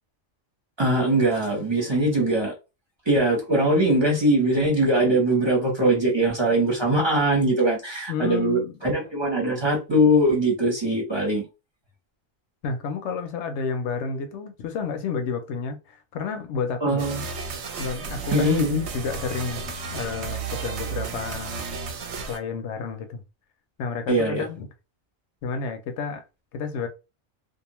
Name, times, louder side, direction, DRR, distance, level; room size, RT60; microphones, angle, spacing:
voice 1, 0.8-2.5 3.1-11.4 16.8-17.2 18.3-18.8 24.1-24.4, right 1 dB, 25° right, 0.8 m, -21 dB
voice 2, 8.1-8.7 12.6-17.0 17.8-18.6 18.9-21.5 22.2-23.2 23.8-24.7 25.4-26.2 26.5-26.9, left 5 dB, 70° left, 0.8 m, -31 dB
sound 1, 17.0-22.4, right 5 dB, 65° right, 0.8 m, -33 dB
2.5 x 2.3 x 2.9 m
omnidirectional pair, 1.3 m